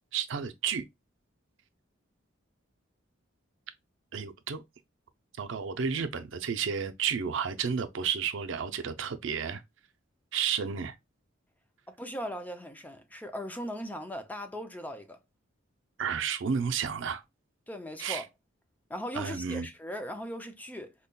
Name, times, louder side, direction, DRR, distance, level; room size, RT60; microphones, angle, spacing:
voice 1, 0.1-0.8 4.1-4.6 5.4-9.6 10.3-10.9 16.0-17.2 18.0-18.2 19.2-19.7, right 7 dB, 65° right, 0.5 m, -31 dB
voice 2, 11.9-15.2 17.7-18.3 18.9-20.9, equal, 10° left, 0.4 m, -38 dB
5.3 x 2.2 x 2.2 m
head